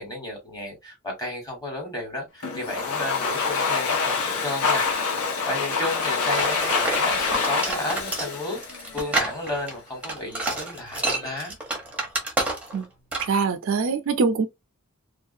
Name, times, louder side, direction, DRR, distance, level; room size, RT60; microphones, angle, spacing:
voice 1, 0.0-4.9 5.4-8.6 8.9-11.6, left 1 dB, 20° left, 1.3 m, -32 dB
Domestic sounds home sounds, 2.4-9.3, left 5 dB, 90° left, 0.7 m, -26 dB
sound 1, 6.3-12.8 13.1-13.4, right 2 dB, 5° right, 0.7 m, -29 dB
voice 2, 13.2-14.5, right 5 dB, 65° right, 0.5 m, -23 dB
2.4 x 2.2 x 2.6 m
head